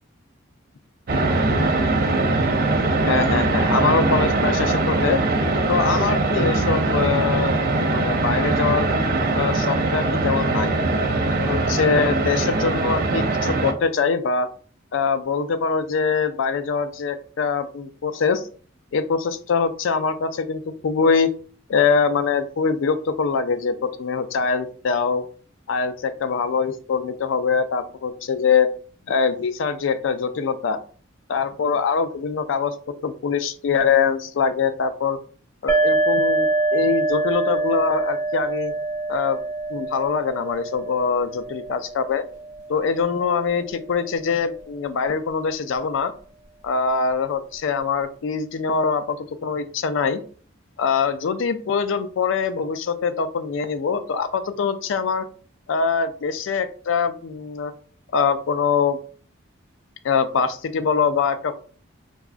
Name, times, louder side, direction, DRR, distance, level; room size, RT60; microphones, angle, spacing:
sound 1, 1.1-13.7, right 2 dB, 45° right, 0.4 m, -21 dB
voice 1, 3.1-5.2 5.7-8.9 9.3-10.8 11.3-14.5 14.9-18.5 18.9-21.3 21.7-25.2 25.7-28.7 29.1-30.8 31.3-32.8 33.0-35.2 35.6-38.7 39.1-39.4 39.7-42.2 42.7-46.1 46.6-50.2 50.8-55.3 55.7-57.7 58.1-59.0 60.0-61.5, left 5 dB, 70° left, 11 dB, 0.4 m, -23 dB
sound 2, 35.7-43.2, right 2 dB, 20° left, 0.6 m, -25 dB
4.7 x 2.3 x 2.4 m, 0.43 s
head